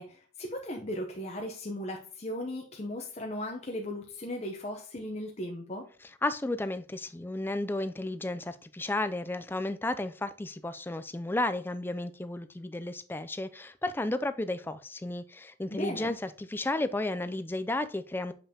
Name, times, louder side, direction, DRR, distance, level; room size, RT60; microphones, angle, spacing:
voice 1, 0.0-5.8 15.7-16.1, left 1 dB, 35° left, 0.8 m, -37 dB
voice 2, 6.2-18.3, left 2 dB, 10° left, 0.4 m, -33 dB
6.9 x 5.5 x 2.8 m
head